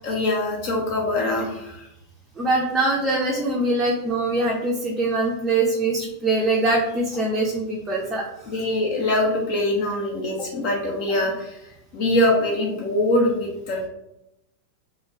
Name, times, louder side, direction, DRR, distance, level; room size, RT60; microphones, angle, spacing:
voice 1, 0.0-1.9 8.5-11.6 11.9-13.9, left 1 dB, 45° left, -1 dB, 0.5 m, -23 dB
voice 2, 2.4-8.3, right 2 dB, 15° right, -3 dB, 0.5 m, -23 dB
2.2 x 2.1 x 3.2 m, 0.86 s
figure-of-eight pair, 90°, 0 cm